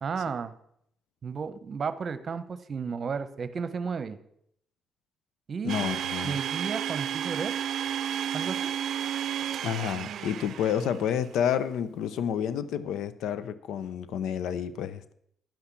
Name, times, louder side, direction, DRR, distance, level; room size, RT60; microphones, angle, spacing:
voice 1, 0.0-0.5 1.2-4.2 5.5-5.8 6.2-7.5 8.3-8.6, right 5 dB, 45° right, 1.0 m, -33 dB
voice 2, 5.6-6.4 9.6-15.1, left 9 dB, 80° left, 0.6 m, -30 dB
Domestic sounds home sounds, 5.7-11.2, right 9 dB, 70° right, 0.5 m, -32 dB
10.5 x 5.8 x 8.3 m
cardioid pair, 90°, 0 cm